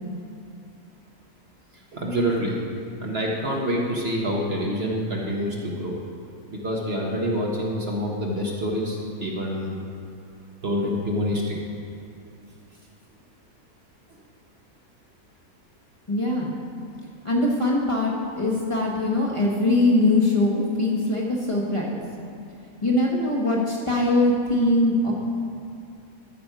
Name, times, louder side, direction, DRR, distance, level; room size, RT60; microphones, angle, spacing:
voice 1, 1.7-2.6 3.0-6.0 6.5-9.8 10.6-11.6, equal, 45° right, -2 dB, 1.3 m, -26 dB
voice 2, 16.1-16.5 17.2-22.0 22.8-25.1, left 2 dB, 20° left, -5 dB, 1.3 m, -22 dB
13.5 x 6.1 x 4.9 m, 2.5 s
omnidirectional pair, 1.5 m